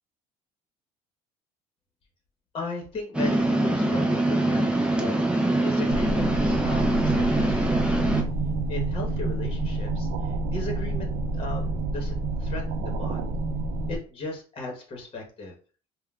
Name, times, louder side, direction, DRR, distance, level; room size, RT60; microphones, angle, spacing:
voice 1, 2.5-4.6 4.9-8.1 8.7-13.2 13.9-15.6, left 3 dB, 35° left, 1 dB, 1.0 m, -37 dB
sound 1, 3.1-8.2, right 1 dB, 5° right, 0.6 m, -24 dB
sound 2, 5.9-14.0, right 2 dB, 60° right, 0.4 m, -28 dB
3.6 x 2.2 x 2.3 m, 0.39 s
supercardioid pair, 95°, 16 cm